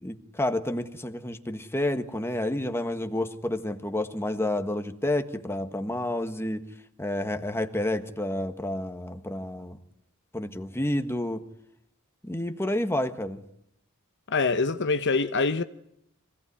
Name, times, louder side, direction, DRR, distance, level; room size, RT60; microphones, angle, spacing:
voice 1, 0.0-6.6 7.0-9.8 10.3-11.4 12.2-13.4, left 1 dB, 10° left, 1.5 m, -30 dB
voice 2, 14.3-15.6, left 4 dB, 55° left, 1.0 m, -24 dB
25.0 x 17.5 x 9.7 m
head